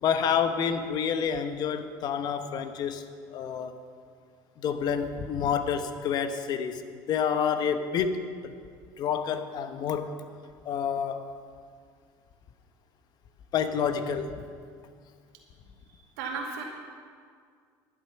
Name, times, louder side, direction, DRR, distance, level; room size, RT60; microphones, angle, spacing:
voice 1, 0.0-3.0 3.3-3.8 4.6-8.5 9.0-10.2 10.6-11.2 13.5-14.4, left 7 dB, 50° left, 9 dB, 1.0 m, -28 dB
voice 2, 15.9-16.6, right 4 dB, 90° right, 0 dB, 2.3 m, -35 dB
11.5 x 11.0 x 5.8 m, 2.1 s
supercardioid pair, 105°, 9 cm